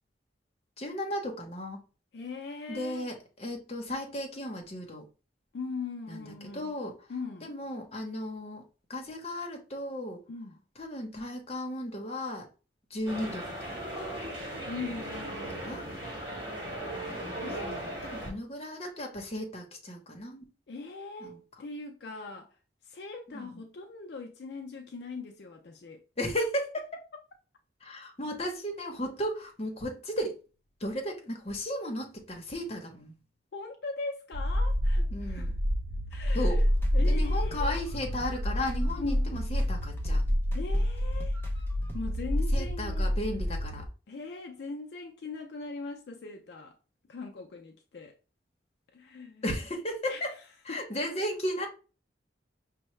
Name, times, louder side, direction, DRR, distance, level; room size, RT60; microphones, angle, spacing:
voice 1, 0.8-1.8 2.7-5.1 6.1-7.1 7.4-10.2 10.8-12.5 12.9-13.8 15.5-15.9 17.6-20.4 21.2-21.4 23.3-23.6 26.2-27.1 27.8-30.4 30.8-33.2 35.1-35.5 36.3-36.6 37.1-40.2 42.5-43.9 49.4-50.3 50.6-51.7, equal, 35° left, 0.9 m, -35 dB
voice 2, 2.1-3.1 5.5-6.7 7.1-7.5 10.3-10.6 14.7-16.0 16.6-16.8 17.4-17.9 20.7-22.6 22.8-26.0 33.5-35.5 36.1-36.6 36.9-37.8 39.0-39.3 40.5-41.4 41.9-43.1 44.1-46.8 47.1-48.2 48.9-49.4 50.1-50.3 50.7-50.8, left 3 dB, 65° left, 0.4 m, -40 dB
sound 1, 13.0-18.3, right 1 dB, 25° right, 1.7 m, -37 dB
sound 2, 34.3-43.9, equal, 55° right, 0.5 m, -28 dB
sound 3, 36.1-42.0, equal, 10° left, 0.5 m, -51 dB
5.4 x 2.1 x 3.1 m
head